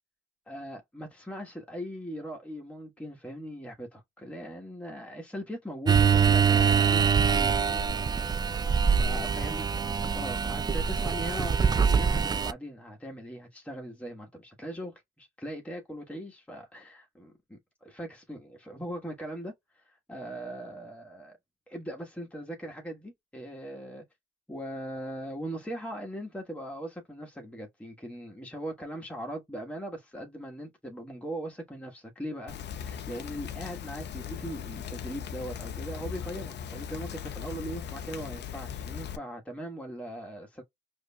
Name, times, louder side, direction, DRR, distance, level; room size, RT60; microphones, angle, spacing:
voice 1, 0.5-8.6 8.9-9.7 10.1-21.4 21.7-24.0 24.5-40.6, right 1 dB, 5° left, 1.3 m, -40 dB
sound 1, 5.9-12.5, right 6 dB, 20° right, 0.3 m, -24 dB
Rain, 32.5-39.2, left 8 dB, 60° left, 0.6 m, -38 dB
4.9 x 2.6 x 2.2 m
cardioid pair, 90°, 20 cm